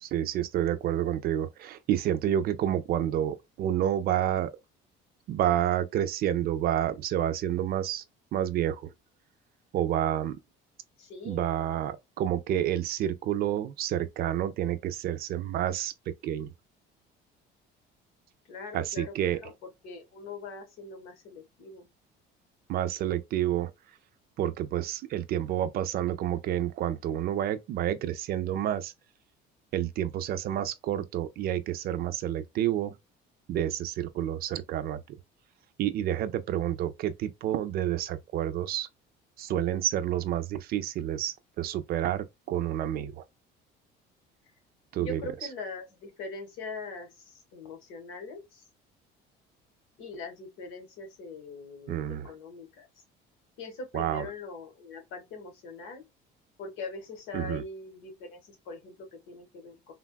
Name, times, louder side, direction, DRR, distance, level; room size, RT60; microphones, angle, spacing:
voice 1, 0.0-4.5 5.3-8.0 8.3-8.9 9.7-10.4 11.2-15.9 16.2-16.5 18.7-19.4 22.7-23.7 24.4-28.9 29.7-32.9 33.5-35.0 35.8-38.9 39.4-43.2 44.9-45.2 51.9-52.3 53.9-54.2 57.3-57.6, right 11 dB, 50° right, 0.4 m, -29 dB
voice 2, 11.0-11.5 18.4-19.5 19.8-21.9 44.4-44.5 45.0-48.7 50.0-52.9 53.6-56.0 56.6-59.9, left 3 dB, 80° left, 1.2 m, -42 dB
3.4 x 2.3 x 2.2 m
cardioid pair, 145°, 20 cm